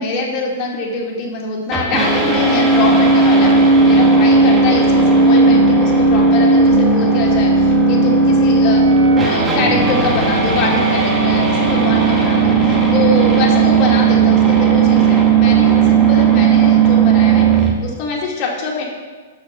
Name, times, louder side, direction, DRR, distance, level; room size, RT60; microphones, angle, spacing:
voice 1, 0.0-8.8 9.2-18.8, left 3 dB, 40° left, -2 dB, 2.3 m, -24 dB
guit. noise, 1.7-17.7, right 4 dB, 15° right, 1.6 m, -13 dB
Wind instrument woodwind instrument, 8.7-12.6, right 7 dB, 55° right, 0.7 m, -28 dB
6.9 x 6.5 x 5.7 m, 1.4 s
hypercardioid pair, 110°, 0 cm